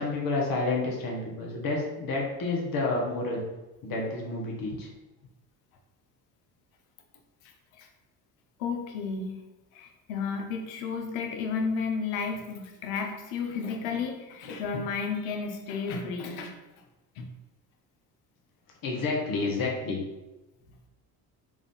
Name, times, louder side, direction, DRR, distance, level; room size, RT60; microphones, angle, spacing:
voice 1, 0.0-3.4 3.8-4.9 18.8-20.0, left 3 dB, 45° left, -2 dB, 1.1 m, -29 dB
voice 2, 7.4-7.9 8.6-9.3 9.7-16.5 17.1-17.3, left 5 dB, 75° left, 3 dB, 0.8 m, -32 dB
3.7 x 2.6 x 3.6 m, 1.0 s
hypercardioid pair, 65°, 47 cm